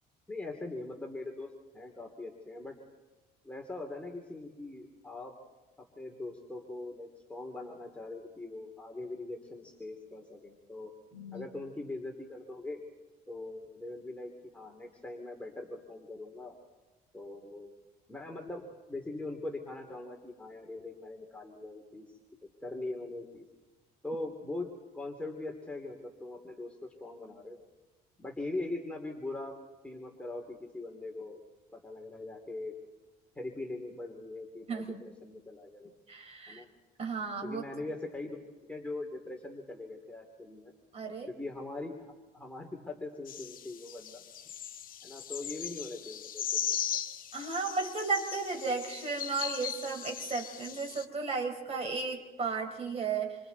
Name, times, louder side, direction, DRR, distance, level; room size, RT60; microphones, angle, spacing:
voice 1, 0.3-1.5 1.7-2.7 3.4-5.3 6.0-10.9 11.3-12.8 13.3-16.6 17.1-17.7 18.1-18.6 18.9-22.1 22.6-23.4 24.0-24.7 24.9-27.6 28.2-29.6 29.8-31.4 31.7-32.7 33.3-35.9 36.5-36.7 37.4-38.4 38.7-40.7 41.3-42.0 42.3-44.2 45.0-46.8, left 2 dB, 5° left, 0 dB, 2.9 m, -41 dB
voice 2, 11.1-11.5 34.7-35.0 36.1-36.6 37.0-37.6 40.9-41.3 47.3-53.4, right 4 dB, 40° right, 3 dB, 4.6 m, -34 dB
sound 1, 43.3-51.0, left 9 dB, 55° left, 1.3 m, -38 dB
28.5 x 26.0 x 4.1 m, 1.2 s
cardioid pair, 110°, 17 cm